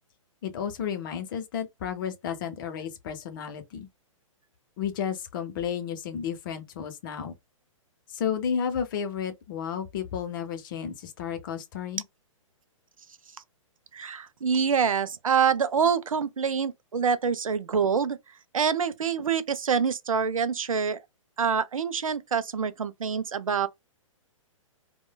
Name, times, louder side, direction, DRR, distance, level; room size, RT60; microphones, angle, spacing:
voice 1, 0.4-3.9 4.8-7.3 8.1-12.0, left 8 dB, 40° left, 0.6 m, -32 dB
voice 2, 13.9-18.2 18.5-21.0 21.4-23.7, right 6 dB, 80° right, 0.4 m, -26 dB
3.1 x 2.1 x 2.2 m
figure-of-eight pair, 115°, 17 cm